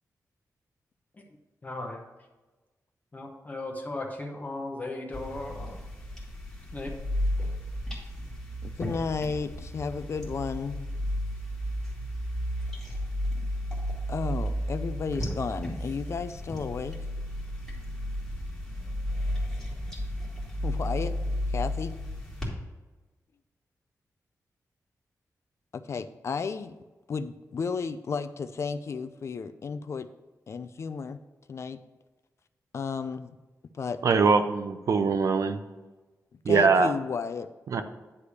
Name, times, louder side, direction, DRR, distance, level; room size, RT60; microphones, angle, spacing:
voice 1, 1.6-2.0 3.1-5.8 6.7-6.9, left 2 dB, 25° left, 1 dB, 0.9 m, -36 dB
sound 1, 5.1-22.5, equal, 5° left, 1.7 m, -33 dB
voice 2, 8.6-10.9 14.1-17.0 20.6-21.1 21.5-21.9 25.7-26.7 27.1-30.1 30.5-31.2 31.5-31.8 32.7-33.3 33.7-34.0 36.5-37.5, left 5 dB, 50° left, 11 dB, 0.4 m, -33 dB
voice 3, 34.0-35.6 36.4-36.9 37.7-37.8, right 5 dB, 60° right, 9 dB, 0.6 m, -22 dB
9.7 x 3.3 x 6.9 m, 1.2 s
wide cardioid pair, 160°, 6 cm